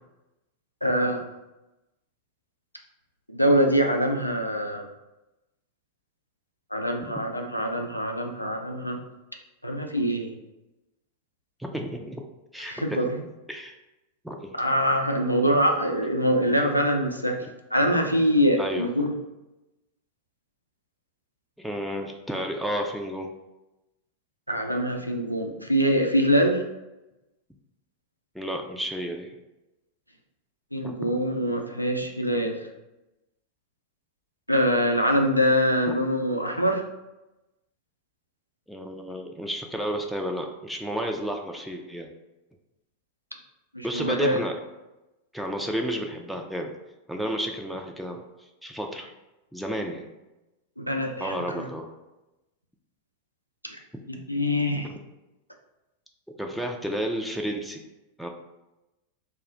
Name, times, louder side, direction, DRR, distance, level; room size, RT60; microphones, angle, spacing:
voice 1, 0.8-1.2 3.3-4.9 6.7-9.0 9.6-10.3 12.7-13.2 14.5-17.4 17.7-19.1 24.5-26.6 30.7-32.6 34.5-36.8 43.7-44.4 50.8-51.6 53.6-53.8 54.1-54.9, equal, 90° left, 3 dB, 0.3 m, -24 dB
voice 2, 11.6-12.2 12.5-13.1 13.5-13.7 14.2-14.5 18.6-19.1 21.6-23.3 28.3-29.3 30.8-31.2 35.9-36.0 38.7-42.1 43.8-44.5 45.3-46.7 47.1-49.1 49.5-50.1 51.2-51.9 56.4-57.8 58.2-58.3, equal, ahead, 2 dB, 0.3 m, -31 dB
2.3 x 2.1 x 3.8 m, 0.99 s
figure-of-eight pair, 90°, 0 cm